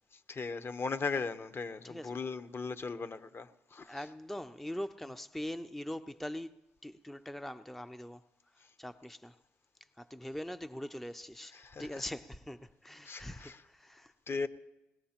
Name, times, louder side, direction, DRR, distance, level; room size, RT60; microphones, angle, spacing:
voice 1, 0.3-4.1 5.0-5.1 11.5-12.0 13.0-13.6 14.3-14.5, left 4 dB, 40° left, 0.9 m, -38 dB
voice 2, 1.8-2.2 3.8-8.2 8.5-9.4 10.0-14.1, left 1 dB, 5° left, 0.5 m, -42 dB
21.0 x 18.5 x 2.9 m
hypercardioid pair, 55°, 6 cm